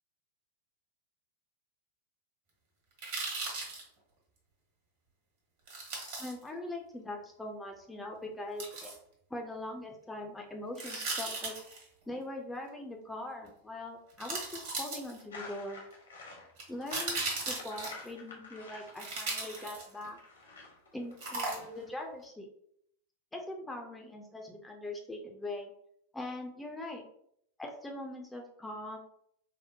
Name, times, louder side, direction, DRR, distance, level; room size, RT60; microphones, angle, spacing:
sound 1, 3.0-3.8 5.7-6.3 8.6-8.9 10.7-11.8 13.5-13.6 14.2-15.4 16.6-18.1 19.0-20.1 21.2-21.9 22.2-22.3, right 3 dB, 55° right, 1.3 m, -37 dB
voice 1, 6.2-8.9 9.3-11.5 12.1-15.8 16.7-20.2 20.9-22.5 23.3-25.7 26.1-27.0 27.6-29.0, left 1 dB, 10° left, 2 dB, 0.5 m, -41 dB
sound 2, 15.3-22.0, left 3 dB, 75° left, 1.0 m, -49 dB
4.2 x 2.1 x 2.7 m, 0.70 s
figure-of-eight pair, 90°, 0 cm